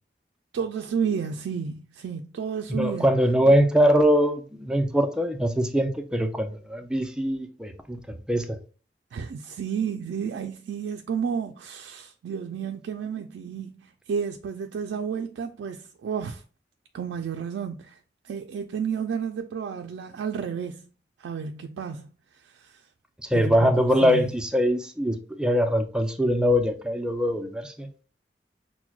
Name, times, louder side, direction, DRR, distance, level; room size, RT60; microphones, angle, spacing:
voice 1, 0.5-3.1 9.1-16.4 16.9-18.0 18.2-20.8 21.2-22.1 22.3-22.8 23.3-24.2, right 6 dB, 90° right, 0.3 m, -31 dB
voice 2, 2.7-8.6 23.2-27.9, equal, 5° right, 0.4 m, -23 dB
5.8 x 2.1 x 2.2 m
head